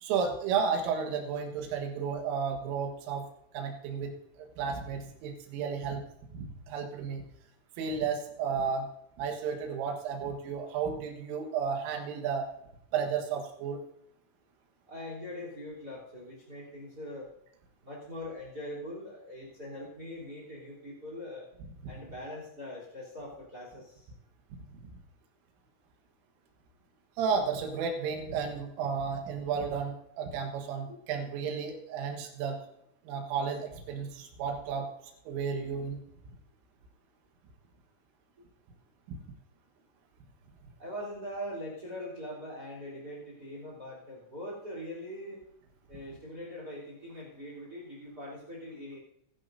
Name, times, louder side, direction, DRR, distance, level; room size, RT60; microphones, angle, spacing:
voice 1, 0.0-3.2 3.5-6.0 6.3-7.2 7.8-8.9 9.2-12.5 12.9-13.8 27.2-32.6 33.1-34.9 35.3-36.0 39.1-39.2, right 6 dB, 75° right, 3 dB, 4.0 m, -33 dB
voice 2, 14.9-17.3 17.8-21.5 21.9-24.1 30.9-31.0 40.8-45.4 45.9-49.0, left 1 dB, 20° right, -1 dB, 3.1 m, -42 dB
20.5 x 11.5 x 2.7 m, 0.78 s
omnidirectional pair, 5.9 m